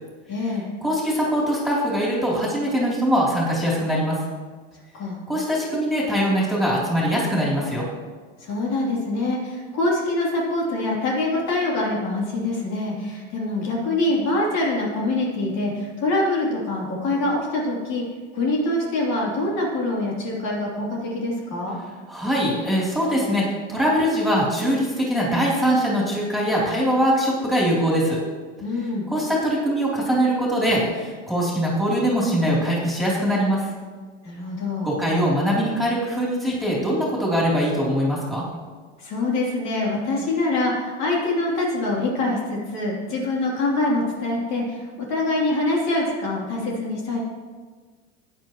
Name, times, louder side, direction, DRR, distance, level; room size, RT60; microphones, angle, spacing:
voice 1, 0.3-0.7 4.9-5.2 8.4-18.0 18.3-21.8 28.6-29.1 34.2-34.9 39.0-47.2, left 2 dB, 55° left, -3 dB, 3.3 m, -24 dB
voice 2, 0.8-4.2 5.3-7.8 22.1-28.2 29.1-33.7 34.8-38.5, equal, ahead, -6 dB, 3.4 m, -22 dB
14.5 x 9.5 x 3.1 m, 1.5 s
supercardioid pair, 110°, 32 cm